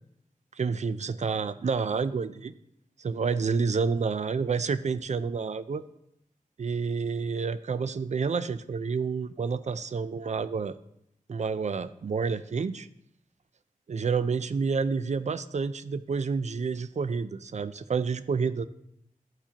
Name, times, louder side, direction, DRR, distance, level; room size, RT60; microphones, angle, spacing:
voice 1, 0.6-2.5 3.0-5.8 6.6-10.8 11.3-12.9 13.9-18.7, right 5 dB, 55° right, 14 dB, 0.4 m, -29 dB
13.0 x 4.7 x 2.9 m, 0.76 s
wide cardioid pair, 85°, 14 cm